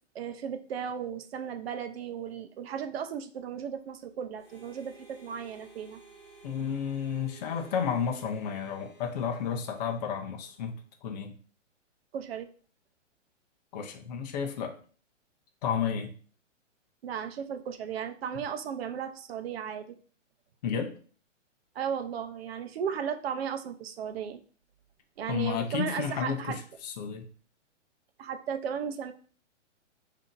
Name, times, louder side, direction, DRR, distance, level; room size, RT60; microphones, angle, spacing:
voice 1, 0.1-6.0 12.1-12.5 17.0-20.0 21.7-24.4 25.2-26.6 28.2-29.1, right 8 dB, 55° right, 8 dB, 0.6 m, -35 dB
Harmonica, 4.4-10.7, right 3 dB, 10° left, 1.8 m, -55 dB
voice 2, 6.4-11.4 13.7-14.8 15.6-16.1 20.6-20.9 25.3-27.3, left 7 dB, 35° left, 3 dB, 0.6 m, -32 dB
5.5 x 2.7 x 2.5 m, 0.41 s
hypercardioid pair, 150°, 37 cm